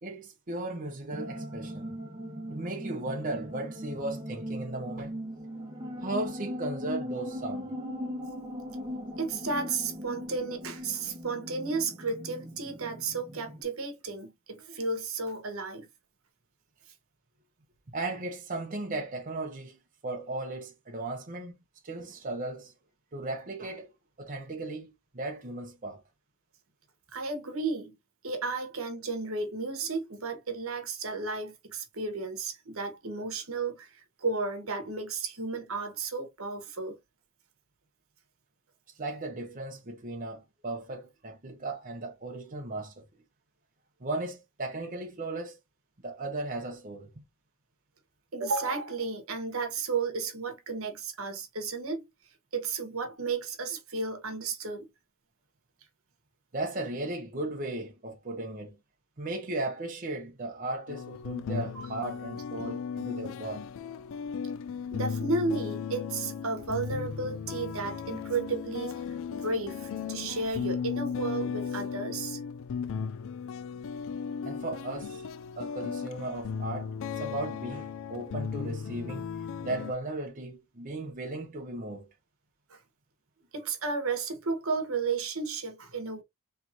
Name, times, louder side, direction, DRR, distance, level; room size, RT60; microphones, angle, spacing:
voice 1, 0.0-1.9 2.5-5.2 6.0-7.7 17.9-21.6 21.8-22.7 23.1-23.9 24.2-26.0 38.9-43.0 44.0-45.6 46.0-47.2 56.5-58.8 59.2-63.7 74.4-79.3 79.6-82.1, right 2 dB, 40° right, 0.9 m, -36 dB
sound 1, 1.1-13.6, equal, 20° right, 1.1 m, -39 dB
voice 2, 9.2-15.9 27.1-28.0 28.2-37.0 48.3-52.1 52.5-54.9 61.7-62.0 64.9-69.0 69.3-72.4 82.7-82.8 83.5-86.2, right 4 dB, 70° right, 1.2 m, -33 dB
sound 2, 60.9-79.9, left 6 dB, 65° left, 0.3 m, -36 dB
4.3 x 3.3 x 2.7 m
head